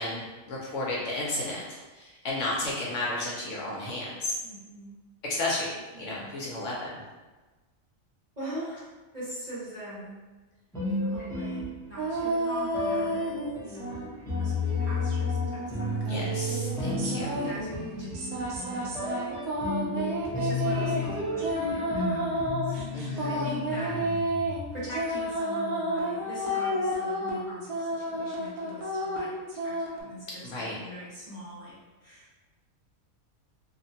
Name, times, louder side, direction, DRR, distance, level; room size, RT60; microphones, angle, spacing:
voice 1, 0.0-4.4 5.2-7.0 16.1-17.4 22.9-23.5 30.4-30.8, left 2 dB, 65° left, -4 dB, 0.9 m, -33 dB
voice 2, 4.4-4.9 5.9-6.4 8.4-8.9 9.1-10.2 10.8-13.3 13.6-14.0 14.4-16.3 17.3-19.2 20.3-22.7 23.1-24.2 24.7-29.3 29.6-31.8 32.0-32.3, right 1 dB, 35° right, -11 dB, 0.8 m, -42 dB
sound 1, 10.7-12.2 12.7-24.9, left 2 dB, 5° left, 0.6 m, -33 dB
sound 2, 12.0-14.0 14.3-30.0, equal, 85° right, 1.1 m, -31 dB
2.9 x 2.1 x 2.7 m, 1.2 s
omnidirectional pair, 1.5 m